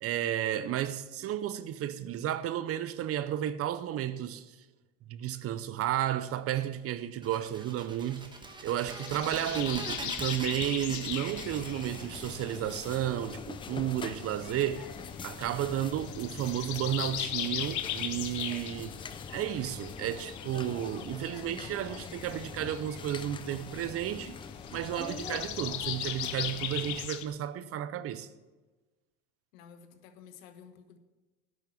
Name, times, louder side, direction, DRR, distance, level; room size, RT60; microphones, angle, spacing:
voice 1, 0.0-4.5 5.1-8.3 8.6-14.9 15.2-18.9 19.3-24.4 24.7-28.3, right 11 dB, 35° right, 0.6 m, -32 dB
sound 1, 7.2-13.7, right 2 dB, 10° right, 1.2 m, -43 dB
sound 2, 8.7-27.3, left 12 dB, 45° left, 0.8 m, -40 dB
sound 3, 11.3-27.1, left 6 dB, 15° left, 0.3 m, -44 dB
voice 2, 29.5-31.0, left 7 dB, 90° left, 1.3 m, -52 dB
10.5 x 6.4 x 7.5 m
supercardioid pair, 120°, 40 cm